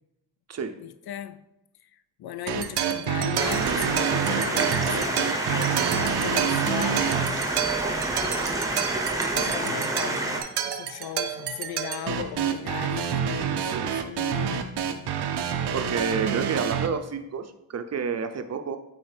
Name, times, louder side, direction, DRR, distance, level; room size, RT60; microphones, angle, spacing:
voice 1, 0.8-1.4 1.8-7.2 7.8-8.8 9.3-13.7 14.0-15.1, left 10 dB, 70° left, 0.5 m, -37 dB
sound 1, 2.5-16.9, right 8 dB, 90° right, 0.6 m, -28 dB
sound 2, 3.4-10.4, right 2 dB, 10° right, 0.8 m, -28 dB
sound 3, 4.6-9.9, left 3 dB, 30° left, 0.7 m, -46 dB
voice 2, 15.7-18.8, right 6 dB, 45° right, 0.5 m, -29 dB
8.9 x 4.1 x 3.3 m
wide cardioid pair, 135°, 39 cm